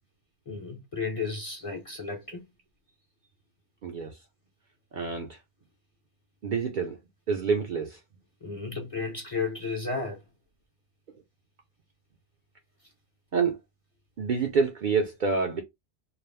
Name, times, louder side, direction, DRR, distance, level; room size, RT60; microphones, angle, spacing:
voice 1, 0.5-2.4 8.4-10.2, left 4 dB, 40° left, 0.5 m, -33 dB
voice 2, 3.8-4.1 4.9-5.4 6.4-7.0 7.3-8.0 13.3-13.6 14.2-15.6, right 5 dB, 55° right, 0.6 m, -27 dB
2.3 x 2.0 x 3.1 m
omnidirectional pair, 1.2 m